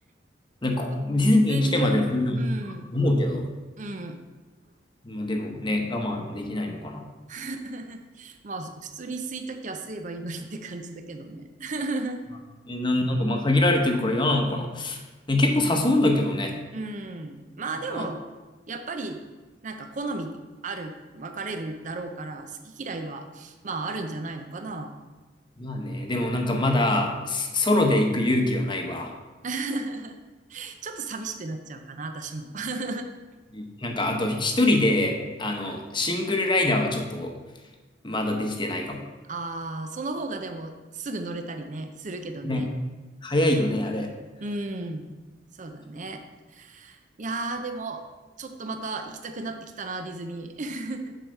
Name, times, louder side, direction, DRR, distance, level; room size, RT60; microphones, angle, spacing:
voice 1, 0.6-2.4 2.7-3.5 5.0-7.0 12.7-15.0 15.3-16.5 17.9-18.1 25.6-29.1 33.5-37.3 38.0-39.0 42.4-42.6 43.2-44.1, left 1 dB, 25° left, 3 dB, 0.9 m, -24 dB
voice 2, 1.5-2.9 3.8-4.2 7.3-12.2 16.7-18.2 18.7-19.2 19.6-20.3 20.6-25.0 29.4-30.2 30.5-33.1 39.3-42.7 44.4-45.1 45.5-46.2 46.5-48.0 48.4-51.2, right 3 dB, 45° right, 6 dB, 0.6 m, -34 dB
7.5 x 4.8 x 6.5 m, 1.2 s
head